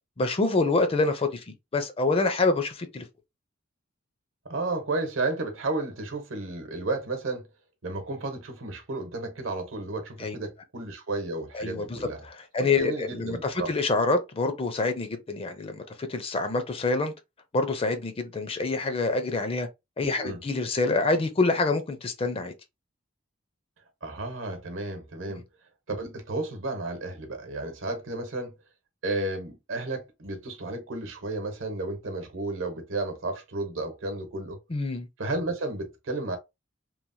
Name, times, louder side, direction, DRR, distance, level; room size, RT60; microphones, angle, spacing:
voice 1, 0.2-1.4 1.7-3.0 10.2-10.4 11.5-12.0 12.2-15.8 16.1-17.1 17.5-19.7 20.0-22.5 25.3-25.4 34.7-35.1, left 3 dB, 30° left, 0.4 m, -26 dB
voice 2, 4.4-7.5 7.8-12.2 12.6-13.7 20.2-20.4 24.0-25.5 25.9-28.5 29.0-34.6 35.2-36.4, right 2 dB, 80° right, 0.9 m, -32 dB
3.0 x 2.0 x 2.6 m
head